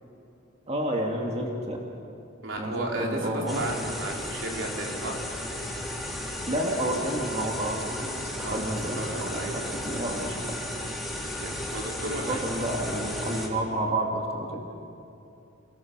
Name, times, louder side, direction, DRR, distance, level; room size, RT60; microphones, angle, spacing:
voice 1, 0.7-1.8 2.6-3.7 6.5-10.6 11.2-11.3 12.2-14.6, right 1 dB, 35° right, 0 dB, 2.3 m, -30 dB
voice 2, 2.4-5.2 8.4-10.0 11.4-12.4, right 1 dB, 75° right, -1 dB, 3.9 m, -34 dB
sound 1, 3.5-13.5, left 1 dB, ahead, 3.4 m, -34 dB
28.5 x 19.5 x 6.2 m, 2.8 s
head